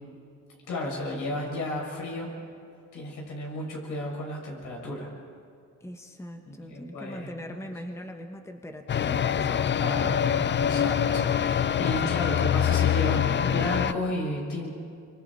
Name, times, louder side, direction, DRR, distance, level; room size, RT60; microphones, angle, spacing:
voice 1, 0.7-2.3 2.9-5.1 6.4-7.5 9.7-10.2 10.6-14.7, left 1 dB, 80° left, -2 dB, 6.8 m, -33 dB
voice 2, 5.8-10.0, equal, 10° left, 4 dB, 1.3 m, -41 dB
sound 1, 8.9-13.9, left 8 dB, 40° left, 0.6 m, -25 dB
26.5 x 24.5 x 4.3 m, 2.4 s
cardioid pair, 90°, 30 cm